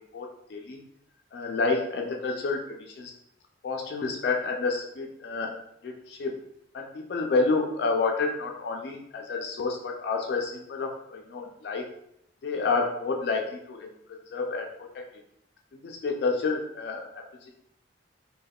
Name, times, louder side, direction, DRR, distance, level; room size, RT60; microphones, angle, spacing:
voice 1, 0.1-0.8 1.3-3.1 3.6-5.5 5.8-6.3 6.7-11.8 12.4-13.9 14.3-14.7 14.9-15.0 15.7-17.0, left 4 dB, 55° left, 2 dB, 0.3 m, -29 dB
3.5 x 2.2 x 2.2 m, 0.77 s
head